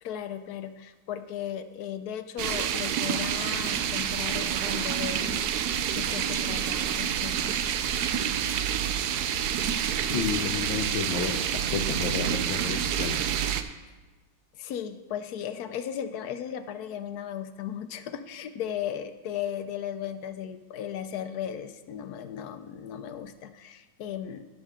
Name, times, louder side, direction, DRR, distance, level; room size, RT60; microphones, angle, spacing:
voice 1, 0.0-5.4 5.9-7.5 9.6-9.8 10.1-10.5 14.5-24.4, left 9 dB, 70° left, 9 dB, 1.0 m, -36 dB
sound 1, 2.4-13.6, right 9 dB, 70° right, 1.0 m, -28 dB
voice 2, 10.1-11.4 11.7-13.2, left 6 dB, 85° left, 2 dB, 1.5 m, -31 dB
17.5 x 6.4 x 3.6 m, 1.2 s
omnidirectional pair, 2.1 m